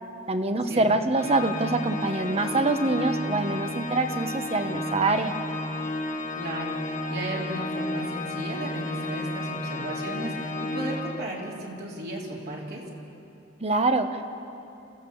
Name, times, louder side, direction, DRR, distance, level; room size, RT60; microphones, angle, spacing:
voice 1, 0.3-5.4 13.6-14.2, right 2 dB, 35° right, 8 dB, 1.1 m, -25 dB
Organ, 1.1-11.8, left 2 dB, 45° left, 1.6 m, -32 dB
voice 2, 6.3-12.8, right 1 dB, 55° right, -3 dB, 3.6 m, -35 dB
28.5 x 15.5 x 7.2 m, 2.8 s
head